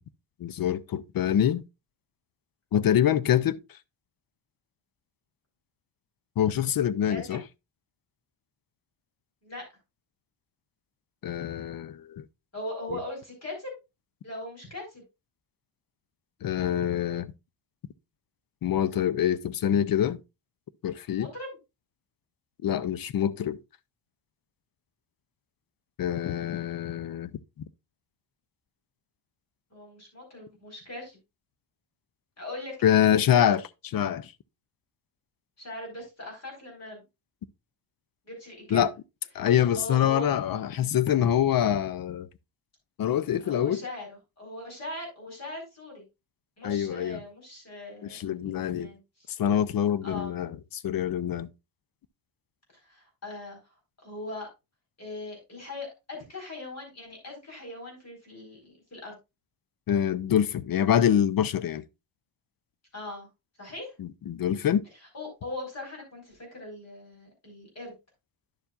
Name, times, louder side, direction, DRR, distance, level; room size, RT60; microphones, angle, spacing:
voice 1, 0.4-1.6 2.7-3.6 6.4-7.4 11.2-12.2 12.9-13.0 16.4-17.3 18.6-20.2 20.8-21.3 22.6-23.6 26.0-27.3 32.8-33.6 33.9-34.3 38.7-38.9 39.3-42.3 43.0-43.8 46.6-47.2 48.1-48.9 49.4-51.5 59.9-61.8 64.0-64.8, left 10 dB, 50° left, 0.5 m, -25 dB
voice 2, 7.1-7.4 9.4-9.7 12.5-13.7 14.2-15.0 21.2-21.6 29.7-31.2 32.4-33.5 35.6-37.0 38.2-38.9 39.4-39.5 39.8-40.3 41.6-41.7 43.4-46.0 46.6-48.2 48.5-49.3 50.0-50.4 52.8-53.6 54.0-54.5 55.0-59.1 62.9-63.3 63.6-63.9 65.1-67.9, left 2 dB, 35° left, 4.4 m, -40 dB
10.5 x 7.1 x 2.4 m
wide cardioid pair, 165°, 47 cm